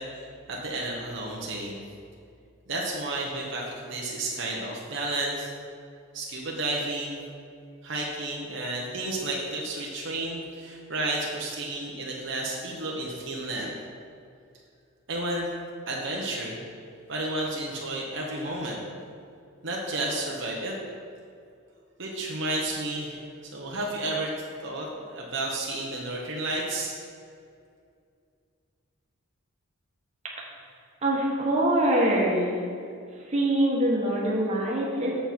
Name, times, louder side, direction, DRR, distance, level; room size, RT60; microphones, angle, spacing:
voice 1, 0.0-1.8 2.7-5.5 6.1-7.2 7.8-13.7 15.1-15.5 15.9-16.6 17.1-18.8 19.6-20.7 22.0-23.2 23.5-24.3 24.6-26.9, right 2 dB, 60° right, -3 dB, 1.1 m, -32 dB
voice 2, 31.0-32.5 33.3-35.2, right 1 dB, 30° right, -3 dB, 1.4 m, -24 dB
7.6 x 7.2 x 4.6 m, 2.4 s
head